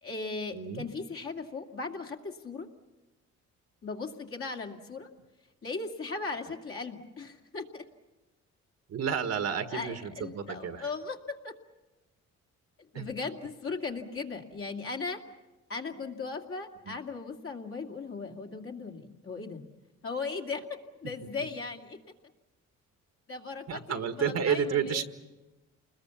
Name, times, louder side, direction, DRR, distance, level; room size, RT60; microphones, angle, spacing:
voice 1, 0.0-2.7 3.8-5.1 5.6-7.9 9.7-11.5 12.8-15.2 15.7-19.6 20.0-20.7 21.0-22.0 23.3-25.0, left 4 dB, 45° left, 2 dB, 2.4 m, -37 dB
voice 2, 0.5-0.8 8.9-10.9 12.9-13.1 16.9-17.0 23.7-25.0, right 7 dB, 60° right, 9 dB, 1.6 m, -31 dB
29.0 x 21.0 x 7.1 m, 1.1 s
cardioid pair, 90°, 30 cm